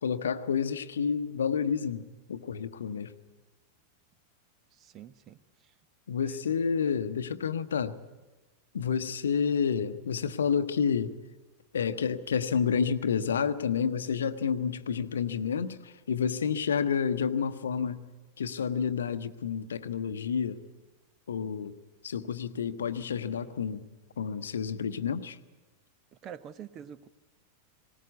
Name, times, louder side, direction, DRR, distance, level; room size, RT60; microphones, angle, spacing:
voice 1, 0.0-3.1 6.1-8.0 8.7-11.1 11.7-18.1 18.4-20.6 21.3-21.7 22.0-23.9 24.2-25.4, left 6 dB, 65° left, 12 dB, 0.8 m, -29 dB
voice 2, 4.7-5.7 6.2-6.4 26.2-27.1, right 9 dB, 30° right, 16 dB, 0.8 m, -46 dB
19.5 x 18.5 x 8.3 m, 1.2 s
figure-of-eight pair, 90°, 0 cm